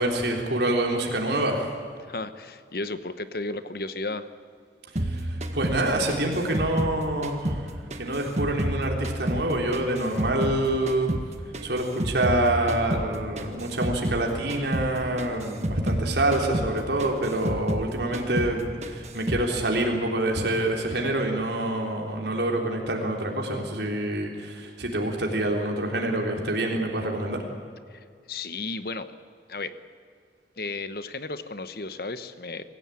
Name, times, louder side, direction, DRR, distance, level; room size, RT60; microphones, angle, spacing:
voice 1, 0.0-1.7 5.0-11.1 11.6-27.4, right 1 dB, 75° right, 1 dB, 3.6 m, -26 dB
voice 2, 2.1-4.3 27.9-29.1 29.5-29.8 30.6-32.6, left 3 dB, 55° left, 11 dB, 1.1 m, -34 dB
sound 1, 5.0-7.7 7.9-10.6 10.9-14.2 14.5-14.9 15.2-17.9 18.1-18.6 18.8-19.5, right 1 dB, 40° right, 1.6 m, -30 dB
25.0 x 15.5 x 8.6 m, 2.2 s
head